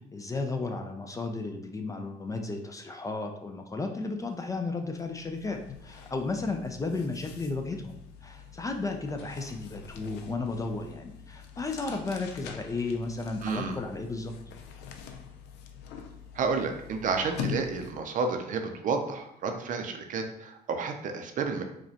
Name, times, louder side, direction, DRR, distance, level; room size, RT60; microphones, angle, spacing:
voice 1, 0.1-14.3, left 3 dB, 20° left, 4 dB, 0.4 m, -34 dB
sound 1, 4.2-4.4 4.7-18.1, left 8 dB, 80° left, 0.5 m, -44 dB
voice 2, 13.4-13.8 16.3-21.6, right 4 dB, 50° right, 5 dB, 0.5 m, -31 dB
4.8 x 2.2 x 2.8 m, 0.76 s
cardioid pair, 110°, 17 cm